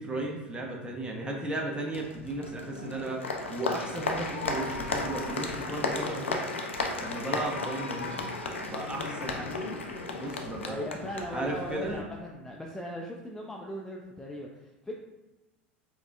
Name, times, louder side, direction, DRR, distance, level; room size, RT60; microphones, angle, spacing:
voice 1, 0.0-6.4 7.0-9.8 10.1-10.9 11.3-12.1, right 2 dB, 15° right, 0 dB, 0.7 m, -35 dB
Applause, 1.9-12.0, left 3 dB, 85° left, 0.4 m, -34 dB
voice 2, 9.0-9.4 10.7-15.0, equal, 5° left, -1 dB, 0.4 m, -39 dB
4.7 x 2.1 x 2.3 m, 1.1 s
figure-of-eight pair, 80°, 6 cm